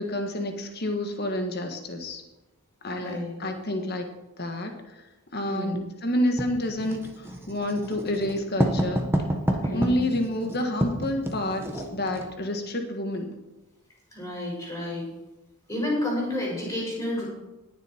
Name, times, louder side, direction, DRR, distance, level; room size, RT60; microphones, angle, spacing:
voice 1, 0.0-2.2 2.8-4.0 4.4-5.0 5.3-9.1 9.7-13.3, left 1 dB, 45° left, 4 dB, 1.5 m, -29 dB
voice 2, 2.9-3.3 5.4-5.8 9.6-10.0 14.1-15.1 15.7-17.2, left 1 dB, 15° left, -4 dB, 5.5 m, -30 dB
Writing, 6.4-12.3, equal, 10° right, 1.3 m, -29 dB
19.5 x 7.3 x 4.5 m, 1.0 s
head